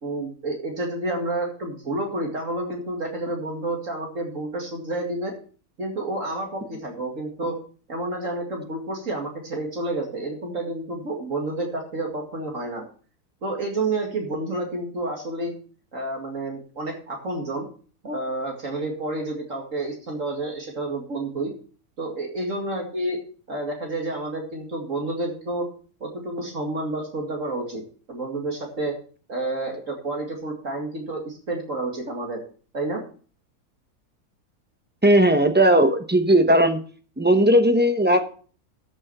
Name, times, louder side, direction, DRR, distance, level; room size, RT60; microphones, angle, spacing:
voice 1, 0.0-5.3 5.8-7.6 7.9-12.8 13.4-15.5 15.9-17.7 18.0-21.5 22.0-23.2 23.5-25.6 26.0-27.8 28.1-28.9 29.3-32.4 32.7-33.0, right 2 dB, 55° right, 1 dB, 2.5 m, -29 dB
voice 2, 35.0-36.8 37.2-38.2, right 1 dB, 10° right, 7 dB, 0.7 m, -17 dB
13.5 x 6.3 x 5.5 m, 0.41 s
omnidirectional pair, 1.7 m